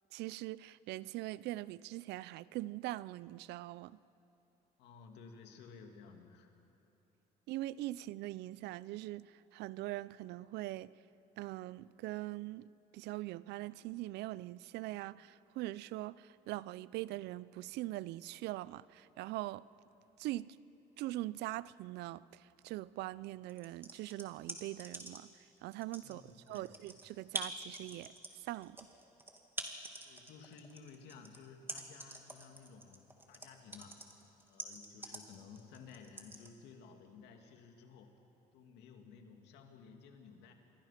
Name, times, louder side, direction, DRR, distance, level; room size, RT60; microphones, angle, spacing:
voice 1, 0.1-4.0 7.5-10.9 11.4-19.7 20.2-20.6 21.0-25.3 25.6-26.2 26.5-28.1 28.4-28.8, right 17 dB, 85° right, 0.5 m, -42 dB
voice 2, 4.8-6.5 26.0-26.7 30.0-34.1 34.4-38.2 38.5-40.5, left 5 dB, 85° left, 2.5 m, -55 dB
sound 1, 23.5-25.4 25.7-36.5, right 1 dB, 15° right, 2.3 m, -45 dB
27.5 x 22.0 x 5.9 m
cardioid pair, 110°, 17 cm